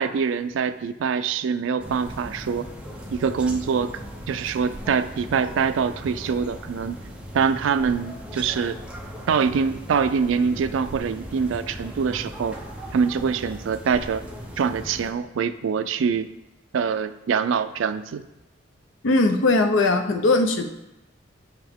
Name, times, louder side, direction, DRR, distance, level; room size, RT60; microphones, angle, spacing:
voice 1, 0.0-2.7 3.1-4.0 4.3-7.0 7.3-8.8 9.3-12.6 12.9-14.2 14.6-16.3 16.7-18.2, right 6 dB, 75° right, 12 dB, 0.3 m, -24 dB
sound 1, 1.8-15.1, equal, 5° right, 0.7 m, -38 dB
voice 2, 19.0-20.6, left 2 dB, 70° left, 6 dB, 0.6 m, -19 dB
5.8 x 5.7 x 3.5 m, 0.95 s
head